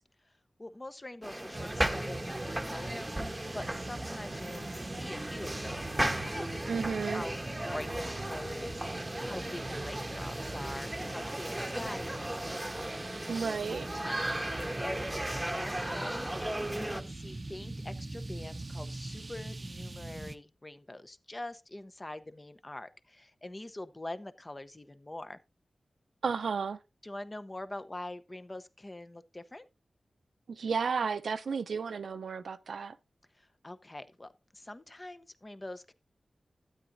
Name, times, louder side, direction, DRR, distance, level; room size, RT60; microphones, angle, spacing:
voice 1, 0.6-12.4 13.3-25.4 27.0-29.7 33.3-35.9, left 1 dB, 25° left, 0.7 m, -45 dB
sound 1, 1.2-17.0, right 1 dB, 10° right, 1.0 m, -36 dB
sound 2, 1.5-20.4, right 2 dB, 35° right, 0.6 m, -42 dB
voice 2, 6.7-7.2 13.3-13.9 26.2-26.8 30.5-33.0, right 5 dB, 85° right, 0.6 m, -33 dB
12.5 x 8.9 x 2.6 m
wide cardioid pair, 65°, 0 cm